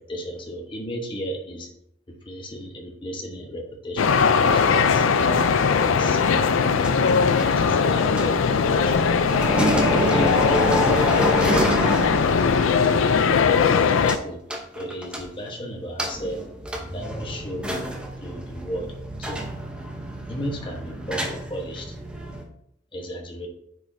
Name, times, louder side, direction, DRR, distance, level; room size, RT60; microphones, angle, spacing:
voice 1, 0.0-1.7 2.1-4.2 4.5-6.5 7.5-9.1 9.6-10.4 10.8-11.5 12.8-14.4 14.7-16.5 16.9-17.7 18.2-19.5 20.3-22.0 22.9-23.5, equal, 25° left, 1 dB, 1.1 m, -35 dB
sound 1, 4.0-14.2, left 5 dB, 90° left, 0.4 m, -20 dB
sound 2, 4.2-9.0 9.3-12.7 12.9-13.0 14.1-14.2 14.5-15.5 16.0-22.4, equal, 5° right, 0.7 m, -28 dB
sound 3, 8.7-13.1, equal, 45° left, 2.2 m, -39 dB
9.3 x 5.0 x 2.7 m, 0.74 s
head